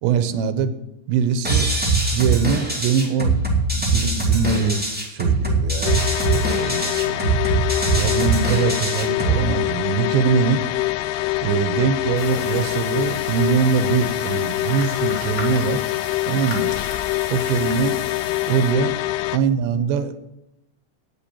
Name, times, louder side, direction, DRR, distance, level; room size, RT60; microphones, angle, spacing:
voice 1, 0.0-0.7 1.1-1.7 2.1-7.4 7.9-10.6 11.4-15.8 16.3-16.7 17.3-18.0 18.5-19.0 19.3-20.2, right 6 dB, 85° right, 11 dB, 3.1 m, -23 dB
sound 1, 1.4-9.4, right 3 dB, 10° right, 0.6 m, -22 dB
sound 2, 5.9-19.4, left 17 dB, 80° left, 2.5 m, -25 dB
sound 3, 12.2-18.7, left 2 dB, 45° left, 0.8 m, -37 dB
9.3 x 8.2 x 8.7 m, 0.87 s
omnidirectional pair, 4.9 m